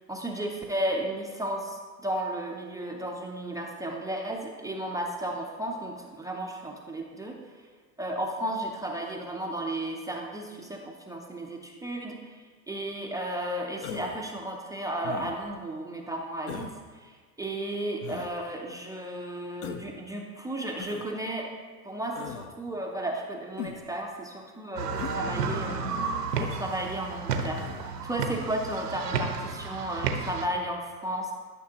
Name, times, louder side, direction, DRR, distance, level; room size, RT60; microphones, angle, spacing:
voice 1, 0.1-7.4 8.0-21.5 21.8-31.3, right 1 dB, 10° right, 0 dB, 0.5 m, -34 dB
Human voice, 13.8-14.3 15.0-15.5 16.5-16.8 18.0-18.3 19.6-19.9 20.8-21.1 22.1-22.5 23.6-23.9 25.0-25.2 26.3-26.6 27.6-27.9, left 9 dB, 40° left, 0.6 m, -39 dB
sound 1, 24.8-30.5, right 5 dB, 85° right, 1.1 m, -32 dB
12.0 x 5.7 x 2.9 m, 1.5 s
hypercardioid pair, 105°, 47 cm